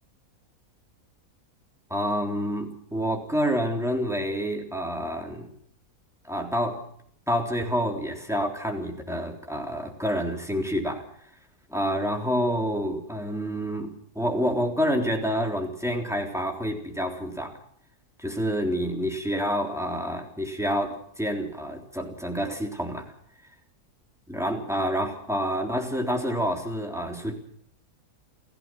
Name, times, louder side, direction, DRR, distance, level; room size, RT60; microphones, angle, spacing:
voice 1, 1.9-5.5 6.2-6.8 7.3-11.0 11.7-17.6 18.2-23.0 24.3-27.3, equal, ahead, 2 dB, 3.5 m, -28 dB
29.5 x 14.5 x 6.2 m, 0.66 s
omnidirectional pair, 1.5 m